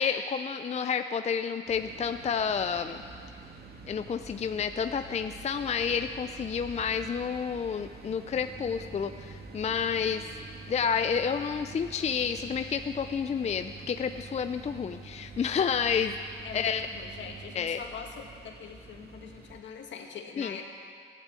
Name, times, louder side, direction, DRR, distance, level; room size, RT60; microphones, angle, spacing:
voice 1, 0.0-3.0 3.9-10.3 10.7-16.2 16.5-16.9 17.6-17.8 20.4-20.6, left 6 dB, 35° left, 8 dB, 0.5 m, -30 dB
sound 1, 1.6-19.6, right 3 dB, 50° right, 1.9 m, -49 dB
sound 2, 8.3-17.6, right 4 dB, 90° right, 2.0 m, -48 dB
voice 2, 16.4-20.7, left 6 dB, 70° left, 2 dB, 2.1 m, -43 dB
15.0 x 11.0 x 8.3 m, 2.3 s
cardioid pair, 90°, 20 cm